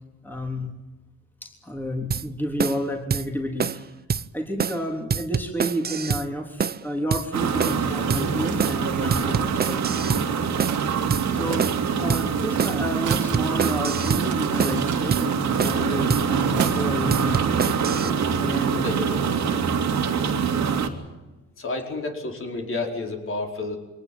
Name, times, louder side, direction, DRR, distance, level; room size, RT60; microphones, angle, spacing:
voice 1, 0.2-0.7 1.4-3.9 4.3-10.2 11.3-17.5 18.3-18.9, equal, 5° left, 2 dB, 3.5 m, -30 dB
sound 1, 2.1-2.3 2.6-2.8 3.1-3.3 3.6-3.8 4.1-4.3 4.6-4.8 5.1-6.3 6.6-6.8 7.1-7.3 7.6-7.8 8.1-8.3 8.6-8.8 9.1-10.3 10.6-10.8 11.1-11.3 11.6-11.8 12.1-12.3 12.6-12.8 13.1-14.3 14.6-14.8 15.1-15.3 15.6-15.8 16.1-16.3 16.6-16.8 17.1-18.1, right 7 dB, 30° right, 0.7 m, -26 dB
sound 2, 7.3-20.9, right 6 dB, 65° right, 2.7 m, -25 dB
Mechanisms, 7.6-17.4, right 10 dB, 85° right, 2.6 m, -40 dB
voice 2, 18.7-19.7 20.0-20.3 21.6-23.8, left 2 dB, 45° left, 2 dB, 4.9 m, -31 dB
23.0 x 18.5 x 9.4 m, 1.1 s
cardioid pair, 90°, 30 cm